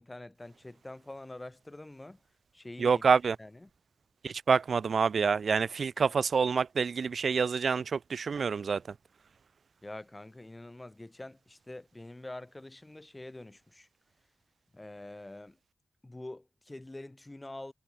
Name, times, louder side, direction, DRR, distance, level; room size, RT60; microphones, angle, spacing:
voice 1, 0.0-2.2 2.5-3.0 3.4-3.7 9.8-13.9 14.7-15.6 16.0-17.7, left 2 dB, 20° left, 6.4 m, -45 dB
voice 2, 2.8-3.4 4.2-8.8, right 5 dB, 65° right, 1.5 m, -27 dB
wide cardioid pair, 105°, 0 cm